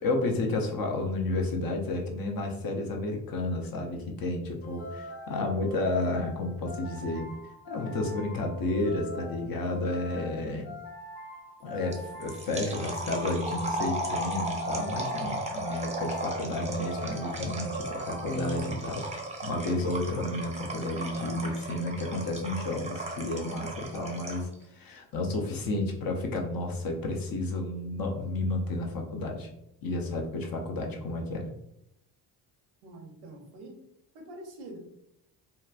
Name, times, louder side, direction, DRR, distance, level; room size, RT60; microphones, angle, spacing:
voice 1, 0.0-7.3 7.7-10.7 11.6-19.1 19.4-29.5 29.8-31.5, left 2 dB, 45° left, 2 dB, 0.7 m, -31 dB
sound 1, 4.6-19.2, right 1 dB, 90° left, 0.7 m, -42 dB
sound 2, 11.9-24.5, right 1 dB, 15° right, 0.6 m, -36 dB
voice 2, 32.8-33.8 34.1-34.8, right 1 dB, 70° right, 3 dB, 0.8 m, -45 dB
2.9 x 2.2 x 2.4 m, 0.80 s
supercardioid pair, 60°, 49 cm